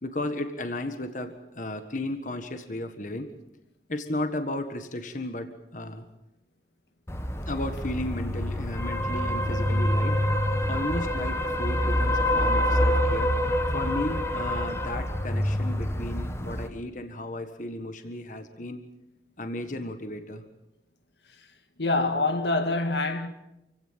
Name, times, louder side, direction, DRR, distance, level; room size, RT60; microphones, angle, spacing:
voice 1, 0.0-3.3 3.9-6.0 7.5-10.2 10.7-13.3 13.7-18.8 19.4-20.4, left 1 dB, 45° left, 1.6 m, -34 dB
sound 1, 7.1-16.7, left 1 dB, 15° left, 1.4 m, -26 dB
voice 2, 21.8-23.3, left 2 dB, 75° left, 1.9 m, -25 dB
28.0 x 17.0 x 7.6 m
head